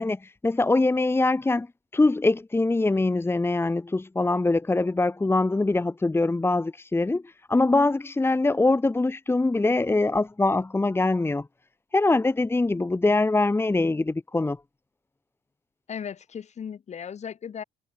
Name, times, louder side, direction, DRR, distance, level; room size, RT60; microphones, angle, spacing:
voice 1, 0.0-1.7 1.9-7.2 7.5-11.4 11.9-14.6, left 2 dB, 15° left, 2.1 m, -23 dB
voice 2, 15.9-17.6, left 7 dB, 40° left, 5.5 m, -36 dB
cardioid pair, 110°, 17 cm